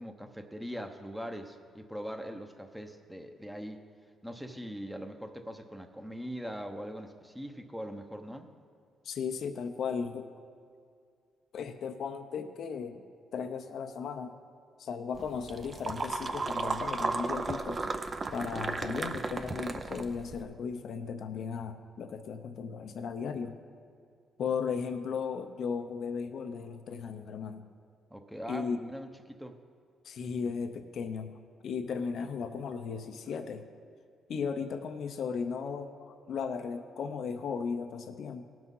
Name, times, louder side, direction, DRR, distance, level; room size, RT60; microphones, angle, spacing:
voice 1, 0.0-3.8 4.2-8.5 28.1-29.6, equal, 5° right, 5 dB, 0.9 m, -41 dB
voice 2, 9.0-10.3 11.5-13.0 13.3-14.3 14.8-18.0 18.3-23.6 24.4-27.6 28.5-28.9 30.0-33.6 34.3-38.4, left 6 dB, 65° left, 8 dB, 0.7 m, -36 dB
sound 1, 15.1-20.4, right 3 dB, 35° right, 0.6 m, -34 dB
18.0 x 6.1 x 5.4 m, 2.3 s
cardioid pair, 90°, 0 cm